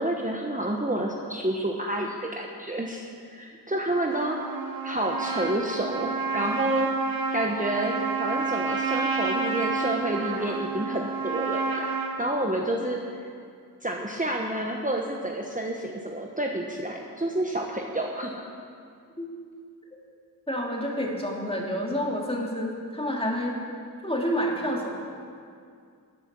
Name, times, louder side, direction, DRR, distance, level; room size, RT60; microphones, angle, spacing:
voice 1, 0.0-4.4 4.8-6.9 7.3-11.9 12.2-13.0 13.8-18.5, right 1 dB, 20° right, 0 dB, 1.1 m, -29 dB
Trumpet, 4.1-12.2, right 4 dB, 70° right, 1.8 m, -29 dB
voice 2, 20.5-23.5 24.0-25.0, equal, 15° left, -1 dB, 2.5 m, -29 dB
14.0 x 10.5 x 6.1 m, 2.3 s
wide cardioid pair, 50°, 36 cm